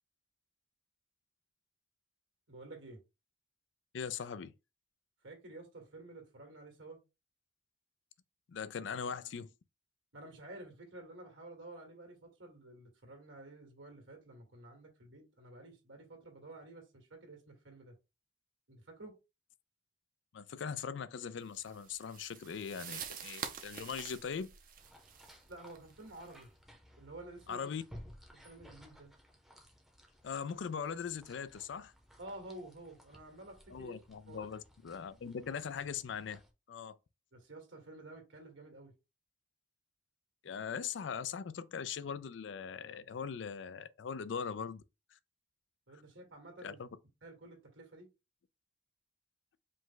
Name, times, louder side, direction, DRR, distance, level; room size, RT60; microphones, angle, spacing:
voice 1, 2.5-3.0 5.2-7.0 10.1-18.0 18.7-19.1 25.5-26.5 27.0-27.7 28.3-29.1 32.2-34.0 34.3-34.5 37.3-38.9 45.9-46.8 47.2-48.1, right 2 dB, 85° right, 1.8 m, -51 dB
voice 2, 3.9-4.5 8.5-9.5 20.3-24.5 27.5-27.8 30.2-31.9 33.7-36.4 36.7-37.0 40.4-44.8 45.1-45.2 46.6-46.9, left 6 dB, 70° left, 0.4 m, -40 dB
sound 1, 21.5-26.4, right 7 dB, 45° right, 0.6 m, -47 dB
sound 2, 24.8-36.5, equal, ahead, 0.7 m, -58 dB
5.0 x 2.2 x 3.8 m
head